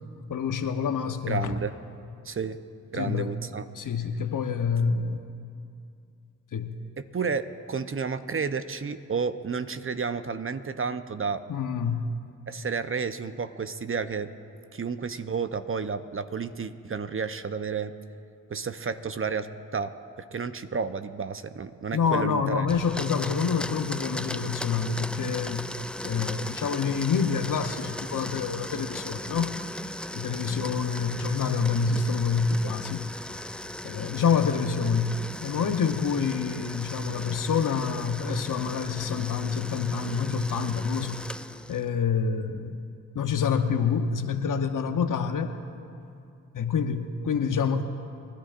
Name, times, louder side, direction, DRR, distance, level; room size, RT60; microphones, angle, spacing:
voice 1, 0.3-1.5 2.9-3.3 3.7-5.2 6.5-6.7 11.5-12.1 21.9-25.7 26.0-29.5 30.2-33.4 33.8-41.2 41.7-42.8 43.1-45.5 46.5-47.8, left 6 dB, 60° left, 8 dB, 1.0 m, -27 dB
voice 2, 1.3-1.8 2.2-2.6 2.9-3.6 7.0-11.4 12.5-14.3 14.7-17.9 18.5-19.9 20.3-22.7, right 5 dB, 35° right, 11 dB, 0.8 m, -31 dB
Domestic sounds home sounds, 22.7-41.9, left 1 dB, 5° left, 0.4 m, -38 dB
29.5 x 11.5 x 2.6 m, 2.5 s
supercardioid pair, 40°, 35 cm